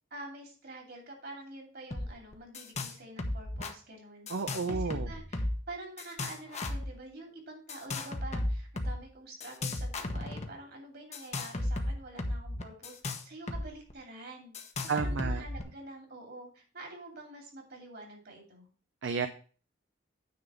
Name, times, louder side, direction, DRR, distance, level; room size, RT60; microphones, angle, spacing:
voice 1, 0.1-14.5 14.8-18.7, right 2 dB, 55° right, 2 dB, 2.7 m, -47 dB
sound 1, 1.9-2.1 2.3-2.9 3.2-3.7 4.3-5.7 6.0-6.9 7.7-8.9 9.4-10.5 11.1-13.6 13.9-14.0 14.5-15.6, left 2 dB, 35° left, 1.0 m, -34 dB
voice 2, 4.3-5.1 14.9-15.4 19.0-19.3, right 4 dB, 70° right, 9 dB, 0.6 m, -32 dB
9.4 x 3.8 x 6.7 m, 0.40 s
head